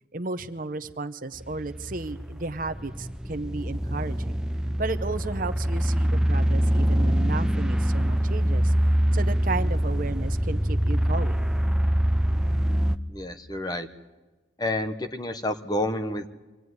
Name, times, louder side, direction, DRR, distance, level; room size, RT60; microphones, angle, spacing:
voice 1, 0.1-4.4 4.8-8.7 9.1-11.4, right 3 dB, 45° right, 11 dB, 0.9 m, -33 dB
sound 1, 1.4-13.0, equal, 5° right, 0.7 m, -24 dB
voice 2, 13.1-13.9 14.6-16.3, left 1 dB, 20° left, 7 dB, 1.0 m, -29 dB
25.0 x 18.0 x 9.6 m, 1.2 s
head